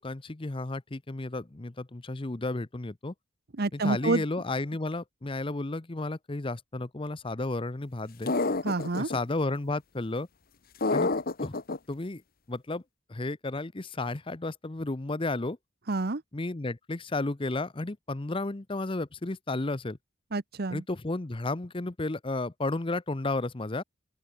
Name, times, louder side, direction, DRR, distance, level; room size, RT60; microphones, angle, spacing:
voice 1, 0.0-3.1 3.7-8.3 9.0-10.3 10.9-11.1 11.4-11.6 11.9-12.2 12.5-12.8 13.1-15.6 16.3-20.0 20.7-23.8, left 2 dB, 25° left, 0.7 m, -32 dB
voice 2, 3.6-4.2 8.6-9.1 15.9-16.2 20.3-20.8, right 3 dB, 50° right, 0.9 m, -28 dB
sound 1, 8.3-9.2 10.8-11.8, left 3 dB, 45° left, 1.0 m, -28 dB
open air
head